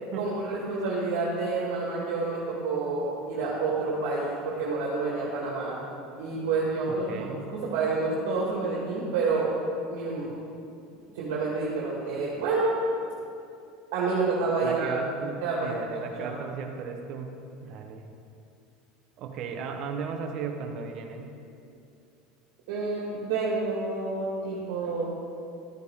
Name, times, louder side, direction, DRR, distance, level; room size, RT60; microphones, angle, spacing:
voice 1, 0.2-5.8 6.2-9.5 9.9-10.3 11.1-12.8 13.9-15.0 15.4-16.4 22.7-25.1, right 3 dB, 75° right, -5 dB, 2.0 m, -29 dB
voice 2, 7.1-7.5 14.6-17.3 17.6-18.0 19.2-21.2, right 5 dB, 55° right, 5 dB, 1.0 m, -36 dB
12.5 x 9.4 x 3.7 m, 2.5 s
supercardioid pair, 105°, 0 cm